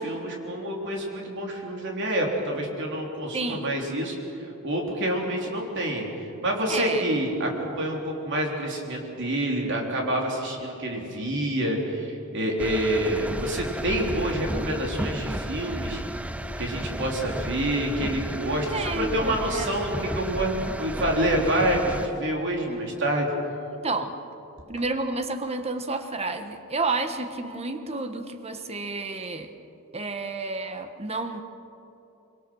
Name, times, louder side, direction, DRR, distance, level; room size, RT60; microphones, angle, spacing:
voice 1, 0.0-4.2 4.6-6.1 6.4-16.0 16.6-23.3, right 1 dB, 60° right, 0 dB, 3.6 m, -27 dB
voice 2, 3.3-3.7 6.7-7.1 18.7-19.7 22.7-22.8 23.8-24.1 24.7-29.5 29.9-31.4, right 3 dB, 30° right, 8 dB, 1.3 m, -30 dB
sound 1, 12.6-22.1, right 1 dB, 5° right, 0.5 m, -33 dB
25.0 x 24.0 x 6.4 m, 2.9 s
head